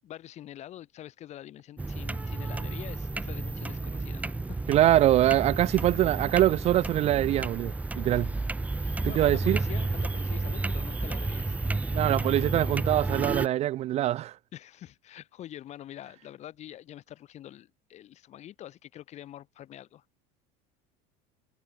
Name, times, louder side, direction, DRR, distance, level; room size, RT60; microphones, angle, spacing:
voice 1, 0.0-4.4 8.1-8.3 8.8-11.6 14.5-20.2, left 12 dB, 35° left, 3.4 m, -45 dB
sound 1, 1.8-13.5, right 3 dB, 5° right, 1.2 m, -31 dB
voice 2, 4.7-8.3 9.0-9.6 11.9-14.3, right 13 dB, 35° right, 0.5 m, -24 dB
cardioid pair, 165°, 20 cm